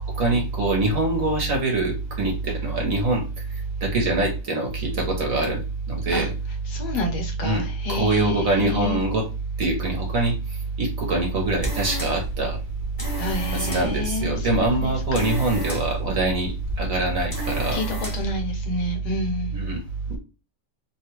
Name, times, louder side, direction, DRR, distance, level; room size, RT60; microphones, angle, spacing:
voice 1, 0.1-3.2 3.8-6.3 7.4-9.2 9.6-12.6 13.5-17.8 19.5-19.8 20.1-20.2, right 2 dB, 60° right, 1.0 m, -25 dB
voice 2, 6.7-9.0 13.2-15.3 17.7-19.6, right 1 dB, 70° left, 1.2 m, -27 dB
sound 1, 11.2-18.4, equal, 25° left, 0.4 m, -34 dB
2.9 x 2.2 x 3.0 m
omnidirectional pair, 1.9 m